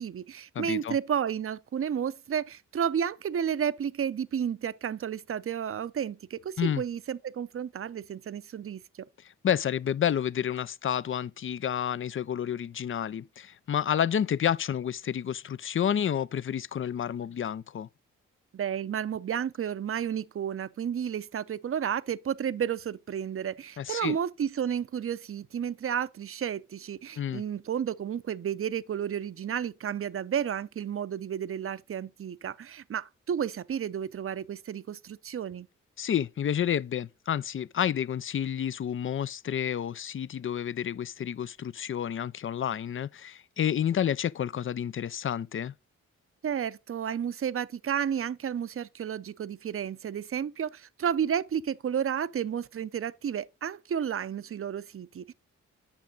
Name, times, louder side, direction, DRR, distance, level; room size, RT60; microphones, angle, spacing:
voice 1, 0.0-8.8 18.5-35.7 46.4-55.3, right 8 dB, 40° right, 0.6 m, -32 dB
voice 2, 0.6-1.0 6.6-6.8 9.4-17.9 23.8-24.2 27.2-27.4 36.0-45.7, left 9 dB, 40° left, 0.4 m, -30 dB
8.6 x 5.8 x 3.9 m
supercardioid pair, 45°, 33 cm